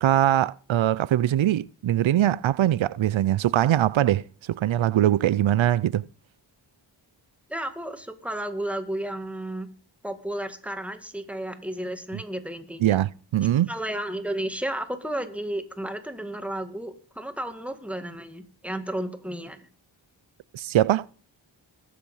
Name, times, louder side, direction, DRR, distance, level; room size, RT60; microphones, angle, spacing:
voice 1, 0.0-4.2 4.5-6.1 12.8-13.7 20.5-21.1, right 12 dB, 90° right, 0.5 m, -22 dB
voice 2, 7.5-9.7 10.0-13.0 13.7-19.7, right 1 dB, 5° right, 1.9 m, -33 dB
21.0 x 7.4 x 5.6 m
wide cardioid pair, 90°, 45 cm